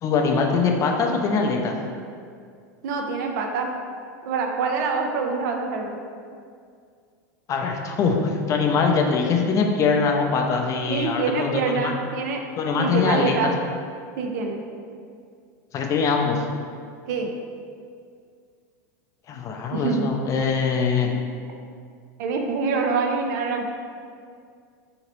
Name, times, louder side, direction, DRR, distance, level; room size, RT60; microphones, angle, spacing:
voice 1, 0.0-1.8 7.5-11.9 12.6-13.5 15.7-16.4 19.3-21.1, left 5 dB, 35° left, 2 dB, 0.4 m, -22 dB
voice 2, 2.8-3.7 4.2-6.0 10.9-12.4 12.8-13.5 14.2-14.6 17.1-17.3 19.7-20.1 21.0-21.1 22.2-23.7, right 4 dB, 70° right, 3 dB, 0.4 m, -25 dB
2.9 x 2.8 x 3.0 m, 2.2 s
hypercardioid pair, 110°, 10 cm